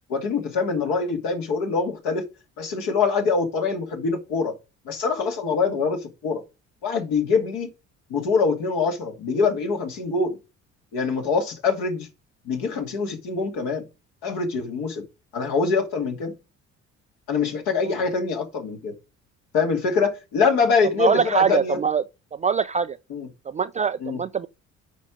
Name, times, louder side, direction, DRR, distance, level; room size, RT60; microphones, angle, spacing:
voice 1, 0.1-2.3 2.6-4.6 4.9-6.4 6.8-7.7 8.1-10.4 10.9-12.1 12.5-13.9 14.2-15.0 15.3-16.4 17.3-18.9 19.5-21.8 23.1-23.3 24.0-24.2, left 4 dB, 60° left, 2.3 m, -24 dB
voice 2, 21.0-22.0 22.3-23.0 23.5-24.5, right 6 dB, 20° right, 0.4 m, -23 dB
9.2 x 5.3 x 4.9 m
figure-of-eight pair, 50°, 39 cm